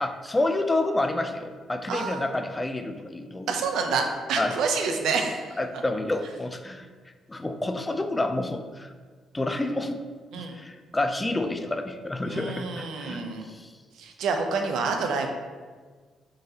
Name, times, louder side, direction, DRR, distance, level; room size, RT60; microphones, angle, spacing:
voice 1, 0.0-3.5 4.4-4.5 5.6-6.9 7.3-8.9 9.3-10.0 10.4-13.2, left 2 dB, 15° left, 7 dB, 0.3 m, -28 dB
voice 2, 1.9-2.2 3.5-5.8 10.3-10.6 12.2-13.5 14.0-15.3, right 4 dB, 80° right, 4 dB, 0.5 m, -28 dB
3.9 x 3.8 x 2.7 m, 1.5 s
cardioid pair, 90°, 0 cm